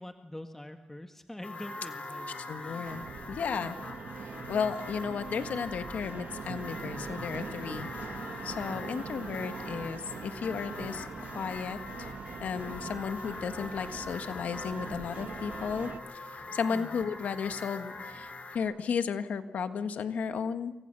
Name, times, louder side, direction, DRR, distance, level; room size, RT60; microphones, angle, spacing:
voice 1, 0.0-2.3 2.6-2.9 16.7-17.0, left 1 dB, 15° left, 5 dB, 1.7 m, -44 dB
sound 1, 1.4-18.6, left 3 dB, 65° left, 3.8 m, -43 dB
voice 2, 2.4-3.8 4.5-7.9 8.4-12.1 12.4-16.2 16.5-20.7, left 6 dB, 90° left, 9 dB, 1.6 m, -34 dB
sound 2, 2.9-16.0, right 6 dB, 85° right, 1.4 m, -43 dB
28.5 x 24.0 x 6.9 m, 1.1 s
cardioid pair, 60°, 3 cm